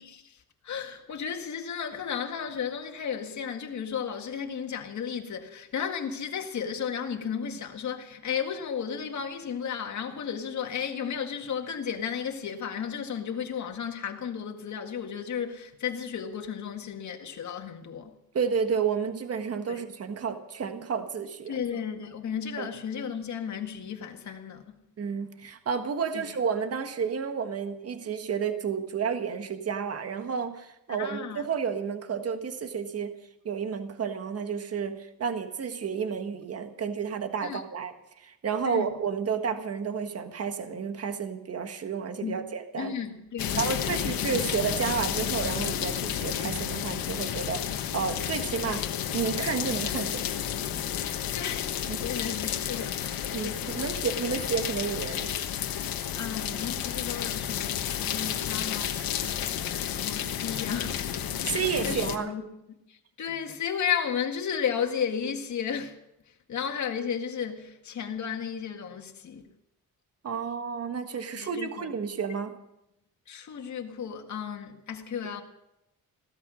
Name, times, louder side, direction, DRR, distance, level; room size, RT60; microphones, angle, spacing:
voice 1, 0.0-18.1 19.6-19.9 21.5-24.8 26.1-26.3 31.0-31.5 37.4-37.6 38.6-38.9 42.2-42.4 42.8-44.1 51.3-51.7 52.0-54.2 55.9-61.0 61.4-62.4 62.9-66.0 66.5-69.5 71.3-71.9 73.3-75.4, left 7 dB, 55° left, 1.9 m, -34 dB
voice 2, 18.3-21.6 22.6-22.7 25.0-33.1 33.4-42.9 43.5-47.6 47.9-48.8 49.1-50.2 51.9-52.0 53.3-55.3 61.4-62.3 70.2-72.6, right 6 dB, 45° right, 1.6 m, -31 dB
sound 1, 43.4-62.2, left 10 dB, 85° left, 1.3 m, -31 dB
16.5 x 13.0 x 6.3 m
cardioid pair, 115°, 34 cm